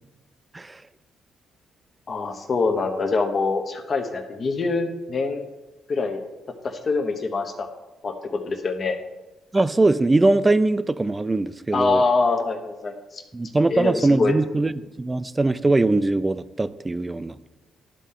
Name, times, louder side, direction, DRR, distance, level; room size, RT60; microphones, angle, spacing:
voice 1, 2.1-5.4 5.9-6.2 6.6-7.7 8.0-9.0 11.7-13.2 13.7-14.4, left 3 dB, 45° left, 3 dB, 0.8 m, -24 dB
voice 2, 9.5-12.0 13.3-17.3, right 2 dB, 20° right, 15 dB, 0.3 m, -21 dB
11.0 x 4.1 x 3.7 m, 1.1 s
cardioid pair, 90°, 0 cm